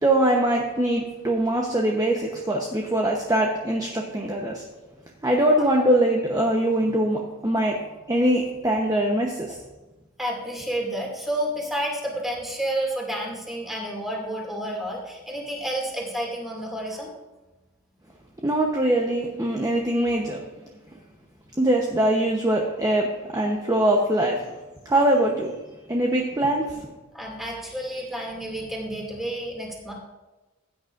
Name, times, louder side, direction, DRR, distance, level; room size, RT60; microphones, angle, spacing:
voice 1, 0.0-4.6 5.2-7.8 8.1-9.6 18.4-20.4 21.6-24.5 24.8-25.6 25.9-26.9, right 1 dB, 15° right, 0 dB, 0.9 m, -22 dB
voice 2, 10.2-17.1 27.1-29.9, right 1 dB, ahead, -2 dB, 2.4 m, -30 dB
15.5 x 9.3 x 2.6 m, 1.1 s
head